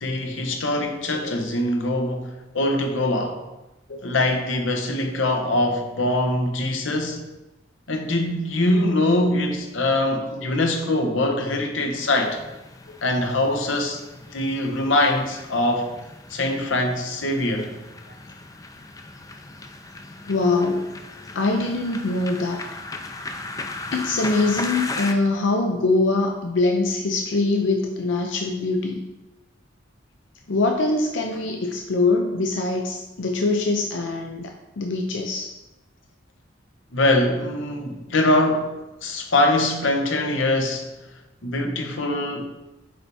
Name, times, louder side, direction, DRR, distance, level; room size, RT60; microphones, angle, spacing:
voice 1, 0.0-3.4 4.0-7.2 7.9-12.4 13.0-14.0 14.3-15.9 16.3-17.7 36.9-38.7 39.0-40.9 41.4-42.5, left 1 dB, 90° left, 4 dB, 1.0 m, -23 dB
sound 1, 11.9-25.1, left 2 dB, 20° left, 0.4 m, -37 dB
voice 2, 20.2-20.9 21.3-22.6 23.9-29.0 30.5-35.5 38.1-38.3, left 3 dB, 70° left, 3 dB, 0.6 m, -23 dB
8.6 x 3.4 x 4.1 m, 1.0 s
head